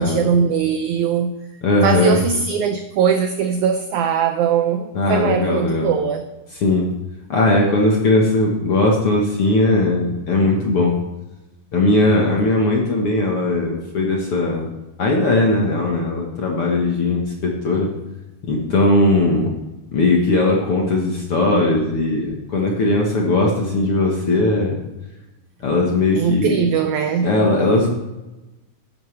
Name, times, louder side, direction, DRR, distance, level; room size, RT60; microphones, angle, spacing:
voice 1, 0.0-1.4 1.8-6.3 26.1-27.4, right 7 dB, 90° right, 1.7 m, -20 dB
voice 2, 1.6-2.2 4.9-5.9 6.6-6.9 7.3-10.9 11.7-14.7 15.0-17.9 18.5-19.5 19.9-24.7 25.6-26.5 27.2-27.9, left 2 dB, 60° left, 1.6 m, -18 dB
11.5 x 10.5 x 3.3 m
omnidirectional pair, 4.3 m